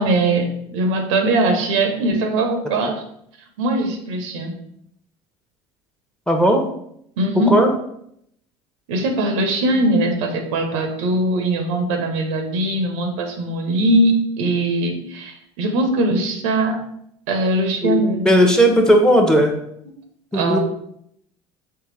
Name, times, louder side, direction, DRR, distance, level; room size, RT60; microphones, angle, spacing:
voice 1, 0.0-3.0 3.6-4.5 7.2-7.6 8.9-16.8 17.3-18.5 19.9-20.0 20.3-20.6, right 2 dB, 80° right, 4 dB, 0.7 m, -21 dB
voice 2, 6.3-6.7 7.5-7.7 17.8-19.5 20.3-20.6, equal, 5° left, 3 dB, 0.8 m, -16 dB
3.4 x 3.2 x 3.3 m, 0.72 s
hypercardioid pair, 80°, 16 cm